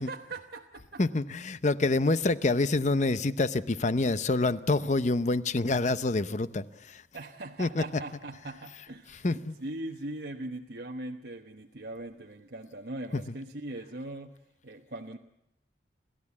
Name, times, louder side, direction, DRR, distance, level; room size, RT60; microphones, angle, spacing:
voice 1, 0.0-1.0 7.1-14.4 14.6-15.2, right 2 dB, 65° right, 1.1 m, -40 dB
voice 2, 1.0-7.0 7.6-7.8 9.2-9.6, left 2 dB, 40° left, 0.7 m, -27 dB
29.5 x 14.0 x 8.5 m
head